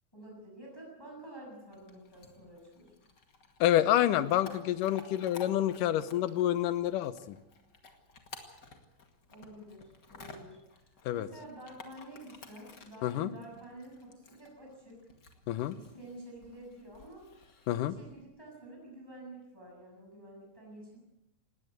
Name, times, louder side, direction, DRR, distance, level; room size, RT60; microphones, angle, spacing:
voice 1, 0.1-2.9 9.3-10.9 11.1-15.0 15.7-17.2 17.8-21.0, right 1 dB, 5° left, -2 dB, 6.8 m, -49 dB
Chewing mastication / Dog, 1.7-18.2, left 3 dB, 35° left, 2.2 m, -54 dB
voice 2, 3.6-7.4 11.1-11.3 13.0-13.3 15.5-15.8 17.7-18.0, left 12 dB, 75° left, 14 dB, 2.4 m, -28 dB
19.5 x 18.0 x 8.1 m, 0.88 s
omnidirectional pair, 4.0 m